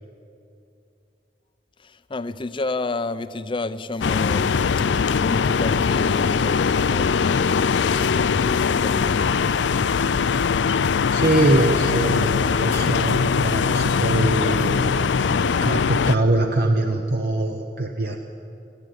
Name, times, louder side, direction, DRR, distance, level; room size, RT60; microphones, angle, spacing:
voice 1, 1.8-9.4, left 2 dB, 30° left, 0.6 m, -31 dB
sound 1, 4.0-16.2, left 5 dB, 85° left, 0.5 m, -21 dB
voice 2, 11.1-18.2, right 2 dB, 60° right, 1.1 m, -23 dB
29.0 x 10.0 x 9.3 m
head